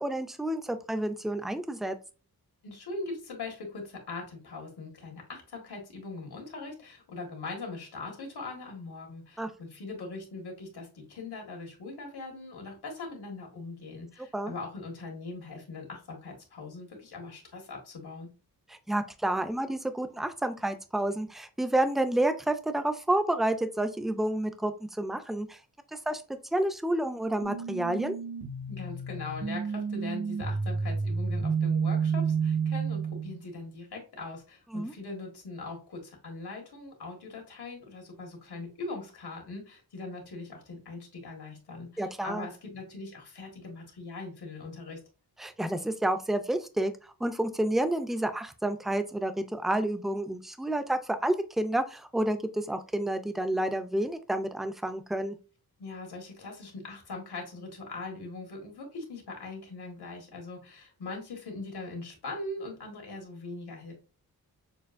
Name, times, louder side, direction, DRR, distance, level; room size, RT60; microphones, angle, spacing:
voice 1, 0.0-2.0 9.4-9.5 14.3-14.5 18.7-25.6 25.9-26.2 26.5-28.1 34.7-34.9 42.0-42.5 45.4-55.4, right 1 dB, ahead, 8 dB, 0.3 m, -29 dB
voice 2, 2.6-18.3 28.7-45.0 55.8-63.9, left 3 dB, 85° left, 1 dB, 1.6 m, -41 dB
sound 1, 27.4-33.4, right 5 dB, 85° right, 1.8 m, -30 dB
6.5 x 2.5 x 2.5 m, 0.33 s
wide cardioid pair, 150°, 38 cm